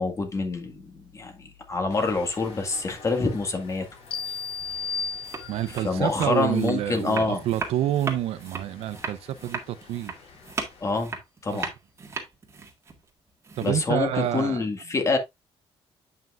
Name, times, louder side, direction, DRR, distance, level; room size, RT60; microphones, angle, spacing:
voice 1, 0.0-3.9 5.8-7.4 10.8-11.2 11.4-11.7 13.6-15.2, left 3 dB, 30° left, 1.9 m, -26 dB
sound 1, 1.9-10.9, left 4 dB, 75° left, 3.3 m, -49 dB
sound 2, 4.1-5.9, left 5 dB, 60° left, 1.5 m, -33 dB
sound 3, 5.1-14.0, right 4 dB, 25° right, 1.8 m, -37 dB
voice 2, 5.5-10.1 11.5-11.7 13.6-14.6, right 12 dB, 85° right, 0.7 m, -28 dB
9.0 x 5.7 x 2.5 m
cardioid pair, 135°, 10 cm